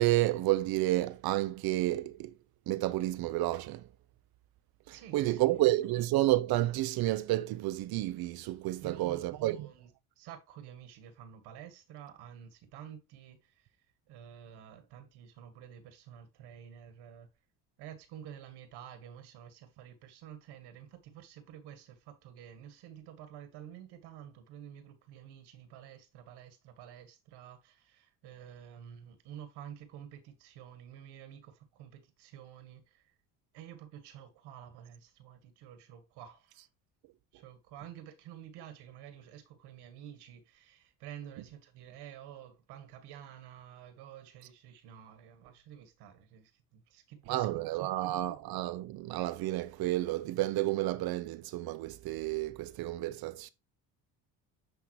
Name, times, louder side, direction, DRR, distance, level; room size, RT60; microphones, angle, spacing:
voice 1, 0.0-2.3 2.7-3.9 4.9-9.7 47.3-53.5, right 16 dB, 65° right, 0.6 m, -30 dB
voice 2, 4.9-5.6 8.8-9.9 10.2-13.7 14.1-17.3 17.8-33.1 33.5-36.7 37.3-47.9, right 9 dB, 85° right, 1.7 m, -50 dB
9.4 x 3.7 x 3.1 m
cardioid pair, 95°, 39 cm